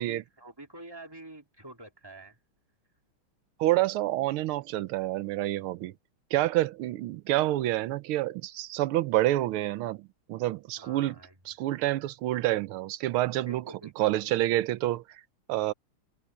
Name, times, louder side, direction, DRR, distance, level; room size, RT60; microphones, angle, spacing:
voice 1, 0.0-2.4 10.8-11.4 13.4-14.1, right 2 dB, 10° right, 2.6 m, -47 dB
voice 2, 3.6-5.9 6.3-11.1 11.5-13.6 14.0-15.0 15.5-15.7, right 15 dB, 85° right, 1.6 m, -28 dB
omnidirectional pair, 2.3 m